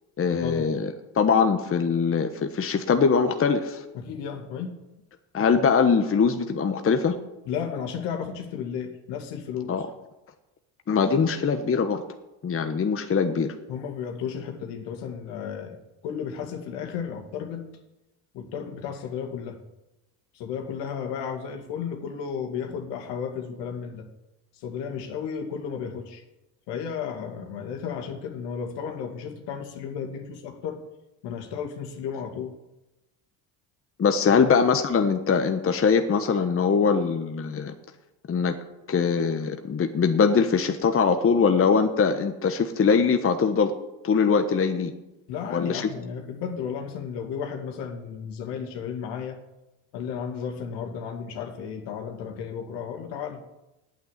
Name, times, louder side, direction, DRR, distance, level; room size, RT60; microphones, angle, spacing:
voice 1, 0.2-3.8 5.3-7.2 9.7-9.9 10.9-12.0 12.4-13.5 34.0-37.7 38.3-38.6 38.9-43.7 44.0-44.9 45.5-45.9, left 5 dB, 30° left, 6 dB, 1.2 m, -22 dB
voice 2, 3.9-4.8 7.5-9.7 13.7-15.8 16.0-17.7 18.3-19.6 20.3-24.1 24.5-26.2 26.7-30.8 31.2-32.5 34.3-34.4 45.3-49.4 49.9-53.4, left 7 dB, 70° left, 4 dB, 2.3 m, -33 dB
8.8 x 8.8 x 9.5 m, 0.95 s
supercardioid pair, 75°, 43 cm